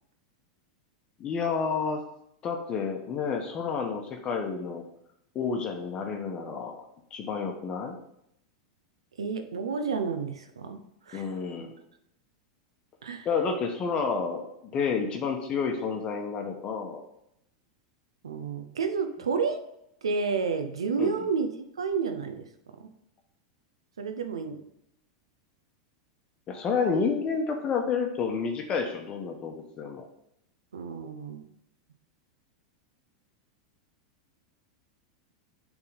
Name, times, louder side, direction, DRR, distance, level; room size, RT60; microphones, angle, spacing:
voice 1, 1.2-2.0 2.4-4.8 5.3-6.8 7.1-8.0 11.1-11.7 13.2-17.0 21.0-21.1 26.5-30.1, left 5 dB, 35° left, 3 dB, 1.1 m, -30 dB
voice 2, 9.2-11.3 13.0-13.3 18.2-19.6 20.0-21.5 21.8-22.5 22.8-22.9 24.0-24.6 30.7-31.5, right 5 dB, 85° right, 7 dB, 0.8 m, -30 dB
6.8 x 3.7 x 5.2 m, 0.78 s
hypercardioid pair, 100°, 3 cm